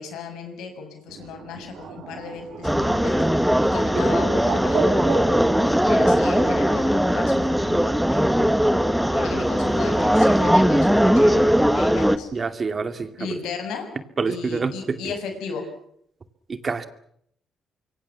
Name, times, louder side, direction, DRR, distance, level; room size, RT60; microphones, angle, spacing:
voice 1, 0.0-7.8 8.1-8.5 9.1-12.3 13.2-13.9 14.3-15.7, left 5 dB, 90° left, 6.4 m, -35 dB
Bird, 1.1-6.6, right 6 dB, 70° right, 4.9 m, -34 dB
sound 1, 2.6-12.2, equal, ahead, 1.4 m, -19 dB
voice 2, 12.3-13.4 14.2-15.1 16.5-16.9, right 4 dB, 35° right, 2.4 m, -27 dB
26.0 x 23.0 x 7.2 m
cardioid pair, 90°, 0 cm